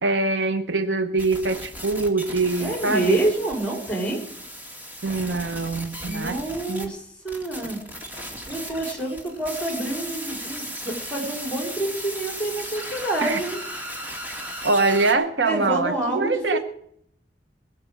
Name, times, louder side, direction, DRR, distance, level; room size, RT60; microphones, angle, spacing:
voice 1, 0.0-3.2 5.0-6.4 6.7-6.9 13.2-13.4 14.6-16.6, right 3 dB, 85° right, 10 dB, 1.1 m, -23 dB
sound 1, 1.2-6.9 7.3-15.1, equal, 10° right, 2.4 m, -36 dB
voice 2, 2.6-4.2 6.0-7.8 8.5-13.6 15.4-16.6, right 2 dB, 5° left, 1 dB, 4.9 m, -27 dB
21.0 x 7.0 x 7.8 m, 0.65 s
head